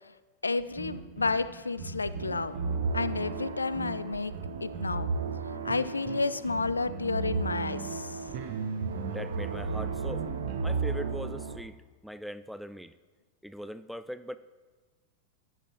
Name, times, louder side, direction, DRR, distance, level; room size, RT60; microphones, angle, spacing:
voice 1, 0.4-2.6 2.9-4.3 4.6-5.1 5.6-8.2, left 3 dB, 80° left, 15 dB, 0.4 m, -31 dB
sound 1, 0.6-11.6, right 5 dB, 45° right, 1.1 m, -41 dB
sound 2, 2.1-11.6, right 4 dB, 65° right, 0.7 m, -34 dB
sound 3, 7.8-11.7, right 2 dB, 90° right, 1.8 m, -53 dB
voice 2, 9.1-10.3 10.6-12.9 13.4-14.4, equal, ahead, 13 dB, 0.3 m, -40 dB
12.5 x 10.0 x 2.9 m, 1.3 s
figure-of-eight pair, 90°, 0 cm